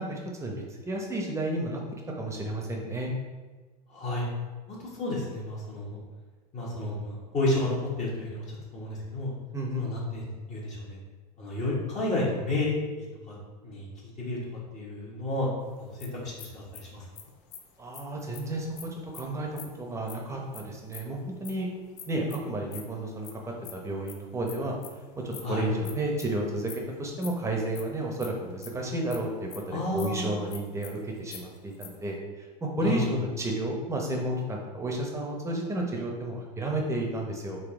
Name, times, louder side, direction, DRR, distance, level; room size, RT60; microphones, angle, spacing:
voice 1, 0.0-1.8 2.2-3.1 9.5-9.8 17.8-21.7 22.1-24.7 25.2-37.6, right 1 dB, 15° right, 0 dB, 0.9 m, -32 dB
voice 2, 3.9-4.2 4.7-6.0 6.5-9.3 9.8-11.0 11.4-13.3 13.6-13.9 14.2-14.4 14.7-17.1 25.4-25.7 29.7-30.5 32.8-33.2, left 2 dB, 35° left, -5 dB, 1.3 m, -31 dB
sound 1, 15.7-21.5 22.0-29.2 29.5-29.6 29.9-30.1 30.3-32.1, left 9 dB, 60° left, 0.6 m, -46 dB
4.0 x 2.6 x 3.7 m, 1.3 s
hypercardioid pair, 95°, 20 cm